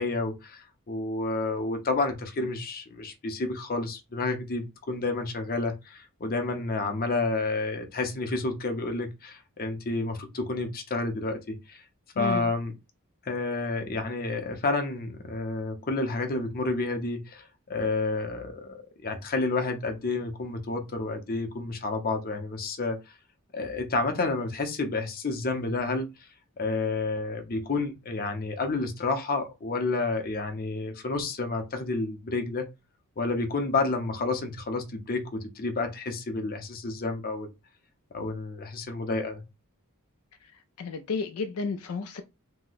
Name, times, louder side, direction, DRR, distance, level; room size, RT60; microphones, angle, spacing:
voice 1, 0.0-11.8 12.2-12.7 13.2-23.0 23.5-26.1 26.6-32.7 33.2-37.5 38.1-39.4, left 3 dB, 45° left, 0.7 m, -30 dB
voice 2, 12.2-12.5 40.4-42.2, left 4 dB, 75° left, 0.4 m, -32 dB
2.8 x 2.1 x 3.9 m
head